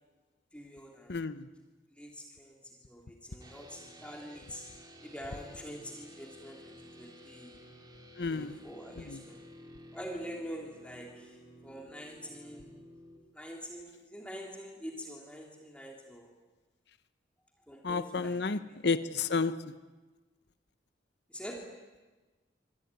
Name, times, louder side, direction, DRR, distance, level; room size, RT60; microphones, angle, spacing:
voice 1, 0.5-1.3 1.9-4.6 5.0-7.5 8.3-9.4 9.9-12.8 13.3-16.3 17.7-19.0 21.3-21.6, equal, 5° left, 0 dB, 3.0 m, -45 dB
voice 2, 1.1-1.5 8.2-8.5 9.1-9.2 17.8-19.6, left 4 dB, 60° left, 12 dB, 0.9 m, -31 dB
sound 1, 3.4-13.2, equal, 20° right, 3.5 m, -53 dB
27.0 x 21.0 x 9.7 m, 1.3 s
head